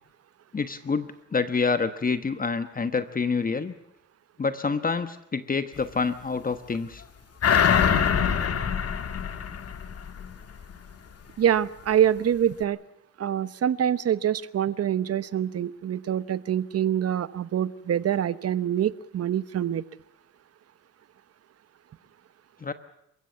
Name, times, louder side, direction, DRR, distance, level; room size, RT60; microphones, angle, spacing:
voice 1, 0.5-3.7 4.4-7.0 22.6-22.7, left 4 dB, 30° left, 10 dB, 1.2 m, -27 dB
sound 1, 7.4-10.3 10.7-10.8, left 7 dB, 55° left, 2.1 m, -24 dB
voice 2, 11.4-12.8 13.2-19.8, right 10 dB, 55° right, 16 dB, 1.0 m, -25 dB
28.0 x 16.0 x 8.5 m, 0.81 s
cardioid pair, 90°, 30 cm